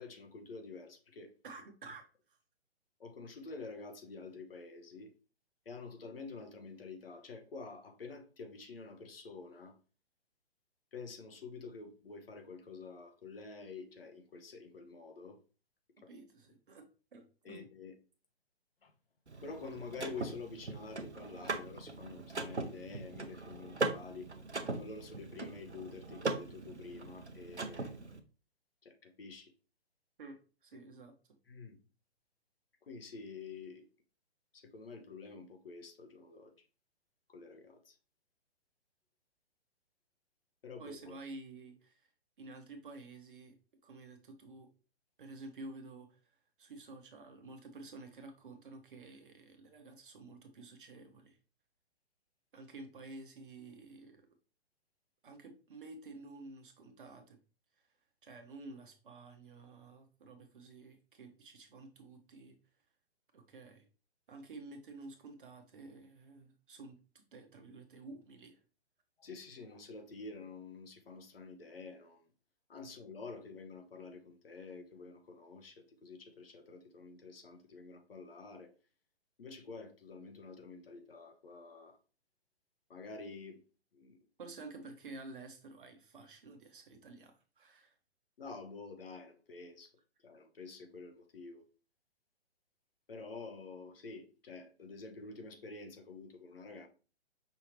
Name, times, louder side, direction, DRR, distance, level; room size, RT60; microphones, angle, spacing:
voice 1, 0.0-1.3 3.0-5.1 5.7-9.8 10.9-15.4 16.0-16.1 17.4-17.9 18.8-18.9 19.4-24.3 24.7-28.0 28.8-29.5 31.5-31.8 32.8-33.9 34.5-36.5 37.3-38.0 40.6-41.1 69.2-72.3 72.7-78.7 79.4-82.0 82.9-83.6 83.9-84.2 88.4-89.9 90.2-91.6 93.1-96.9, left 4 dB, 60° left, 0.9 m, -48 dB
voice 2, 1.4-2.4 16.1-16.8 17.1-17.7 30.2-31.1 40.8-42.0 42.4-43.5 43.8-44.7 45.2-46.2 46.6-51.4 52.5-54.2 55.2-57.4 58.2-62.6 63.3-63.9 64.3-67.0 67.3-68.6 84.4-87.9, right 3 dB, 50° right, 1.1 m, -51 dB
Car / Mechanisms, 19.3-28.2, right 3 dB, 90° right, 0.7 m, -40 dB
5.6 x 2.8 x 3.0 m
figure-of-eight pair, 125°, 33 cm